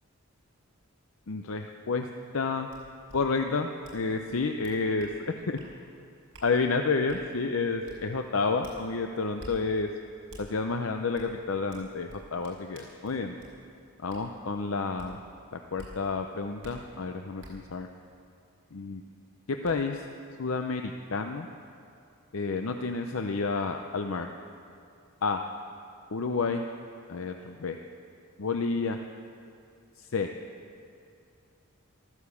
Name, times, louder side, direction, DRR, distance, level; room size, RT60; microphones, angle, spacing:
voice 1, 1.3-2.1 2.3-2.7 3.1-5.6 6.4-9.9 10.4-13.4 14.0-15.2 15.5-17.9 18.7-19.0 19.5-20.1 20.4-21.5 22.3-24.3 25.2-25.4 26.1-26.7 27.1-27.8 28.4-29.0 30.0-30.3, left 4 dB, 70° left, 5 dB, 0.6 m, -30 dB
sound 1, 2.7-2.8 3.1-3.2 3.8-4.0 4.3-5.1 5.6-5.7 6.3-6.5 7.1-7.2 7.8-8.0 8.6-8.8 9.4-9.5 10.3-10.4 11.1-11.3 11.7-13.5 14.1-14.2 15.0-15.1 15.8-15.9 16.6-16.7 17.4-17.5 19.0-19.1 19.6-19.7, right 1 dB, 70° right, 4.6 m, -48 dB
14.5 x 13.5 x 7.0 m, 2.5 s
head